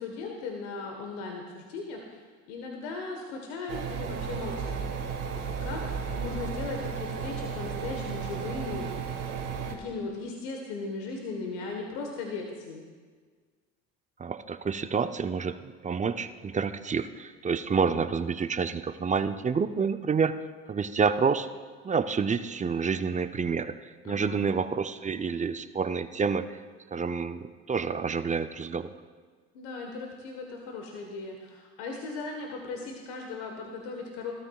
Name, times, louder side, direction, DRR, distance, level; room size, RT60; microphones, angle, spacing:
voice 1, 0.0-2.2 2.5-4.8 5.6-5.8 6.1-9.4 9.7-12.8 24.0-24.4 29.5-34.3, left 3 dB, 80° left, 2 dB, 1.4 m, -37 dB
sound 1, 3.7-9.7, right 6 dB, 70° right, 1.8 m, -34 dB
voice 2, 14.2-20.4 20.7-21.5 21.8-23.7 24.0-26.5 26.9-28.9, right 5 dB, 20° right, 10 dB, 0.6 m, -28 dB
16.0 x 13.0 x 2.4 m, 1.5 s
hypercardioid pair, 70°, 34 cm